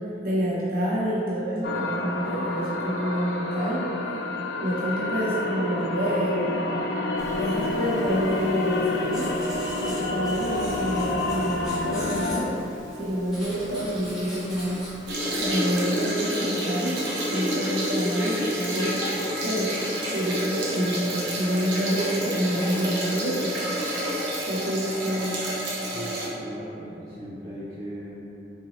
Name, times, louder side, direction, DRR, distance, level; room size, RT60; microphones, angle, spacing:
voice 1, 0.2-3.8 4.6-6.5 7.4-9.3 9.8-12.5 13.0-14.8 15.4-17.0 17.3-19.1 19.4-23.4 24.4-25.4, equal, 50° right, -8 dB, 1.0 m, -27 dB
sound 1, 1.6-12.4, left 2 dB, 65° left, 0.4 m, -29 dB
Writing, 7.2-15.5, equal, ahead, 1.2 m, -41 dB
sound 2, 15.1-26.3, equal, 85° right, 0.8 m, -29 dB
voice 2, 25.9-28.2, right 1 dB, 20° right, -10 dB, 0.5 m, -37 dB
4.5 x 2.9 x 2.8 m, 2.9 s
head